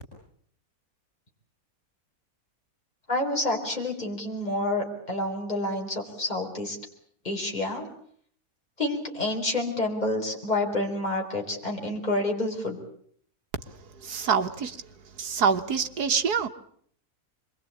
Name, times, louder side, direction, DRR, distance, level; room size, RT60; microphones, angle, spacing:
voice 1, 3.1-6.8 7.2-7.9 8.8-12.8, left 2 dB, 25° left, 4.8 m, -28 dB
voice 2, 14.0-14.8 15.2-16.5, right 6 dB, 90° right, 2.0 m, -25 dB
26.0 x 22.5 x 8.6 m
omnidirectional pair, 1.6 m